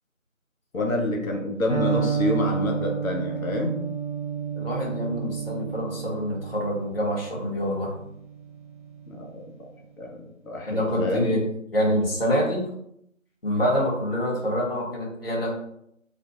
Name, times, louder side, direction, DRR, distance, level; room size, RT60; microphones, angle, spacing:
voice 1, 0.7-3.8 9.1-9.6 10.0-11.3, left 1 dB, 85° left, 1 dB, 0.6 m, -27 dB
Electric guitar, 1.7-9.5, right 7 dB, 60° right, 1.0 m, -31 dB
voice 2, 4.5-7.9 10.7-11.4 11.7-12.6 13.4-15.6, equal, 45° left, -4 dB, 0.7 m, -26 dB
2.5 x 2.1 x 2.7 m, 0.75 s
figure-of-eight pair, 175°, 40 cm